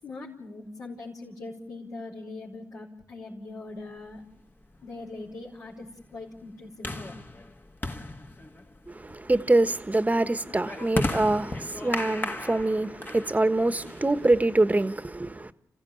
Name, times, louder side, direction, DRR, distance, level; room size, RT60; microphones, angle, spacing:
voice 1, 0.0-4.2 4.8-7.2, left 2 dB, 70° left, 4.9 m, -41 dB
sound 1, 4.1-14.5, left 2 dB, 30° left, 1.7 m, -37 dB
voice 2, 8.9-15.5, right 2 dB, 25° right, 1.3 m, -25 dB
29.5 x 15.5 x 8.9 m
supercardioid pair, 45°, 6 cm